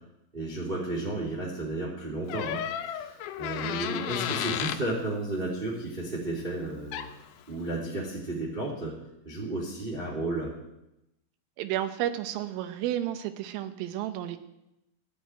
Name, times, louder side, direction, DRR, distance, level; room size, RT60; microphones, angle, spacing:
voice 1, 0.3-7.1 7.5-9.0 9.2-10.5, right 2 dB, 15° right, -2 dB, 2.2 m, -33 dB
Door, 2.3-4.9 6.6-6.7 6.9-7.3, left 10 dB, 75° left, 3.0 m, -33 dB
voice 2, 11.6-14.4, right 12 dB, 90° right, 9 dB, 3.7 m, -31 dB
15.5 x 8.4 x 9.1 m, 0.88 s
omnidirectional pair, 5.8 m